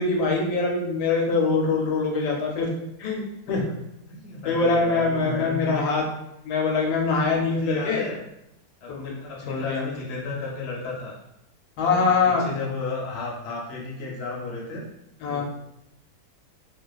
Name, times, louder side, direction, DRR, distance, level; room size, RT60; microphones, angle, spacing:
voice 1, 0.0-2.7 3.0-3.6 4.4-6.0 6.4-8.0 8.9-9.1 9.5-9.9 11.8-12.5 15.2-15.4, left 4 dB, 80° left, 0 dB, 1.1 m, -23 dB
voice 2, 4.1-5.9 7.5-8.2 8.8-11.1 11.8-14.8 15.3-15.4, left 3 dB, 60° left, -3 dB, 0.7 m, -33 dB
2.8 x 2.1 x 2.3 m, 0.83 s
omnidirectional pair, 1.7 m